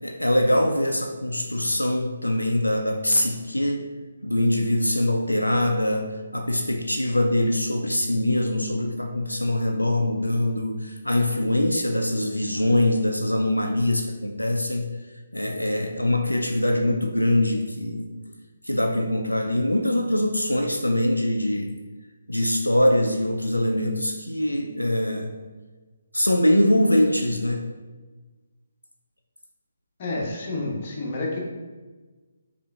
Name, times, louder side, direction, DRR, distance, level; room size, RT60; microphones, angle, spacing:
voice 1, 0.0-3.9 4.2-18.1 18.6-21.8 22.3-25.3 26.1-27.6, left 1 dB, 90° left, 3 dB, 0.4 m, -23 dB
voice 2, 30.0-31.4, left 2 dB, 35° left, -3 dB, 0.9 m, -29 dB
5.2 x 2.5 x 2.3 m, 1.3 s
figure-of-eight pair, 145°, 0 cm